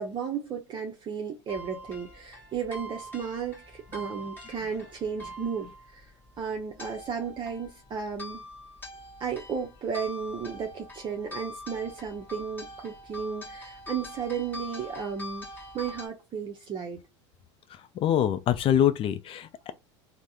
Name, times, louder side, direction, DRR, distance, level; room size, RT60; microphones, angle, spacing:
voice 1, 0.0-6.1 6.4-8.4 9.2-15.5 15.7-17.0, right 6 dB, 30° right, 0.6 m, -34 dB
sound 1, 1.5-16.1, left 1 dB, 15° left, 1.3 m, -44 dB
voice 2, 18.0-19.7, left 10 dB, 35° left, 0.4 m, -24 dB
3.3 x 2.1 x 2.7 m
hypercardioid pair, 90°, 15 cm